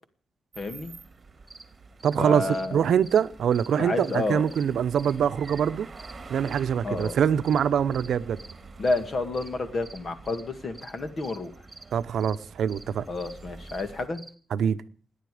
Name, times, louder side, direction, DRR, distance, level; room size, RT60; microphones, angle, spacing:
sound 1, 0.5-14.1, right 3 dB, 30° right, 1.8 m, -47 dB
voice 1, 0.6-0.9 2.2-2.9 3.8-4.5 6.8-7.2 8.8-11.5 13.1-14.2, left 3 dB, 40° left, 2.0 m, -30 dB
sound 2, 1.2-14.3, right 3 dB, 10° right, 2.0 m, -50 dB
voice 2, 2.0-5.9 6.3-8.4 11.9-13.0 14.5-14.8, right 8 dB, 85° right, 0.8 m, -24 dB
27.5 x 10.5 x 5.0 m
wide cardioid pair, 170°, 0 cm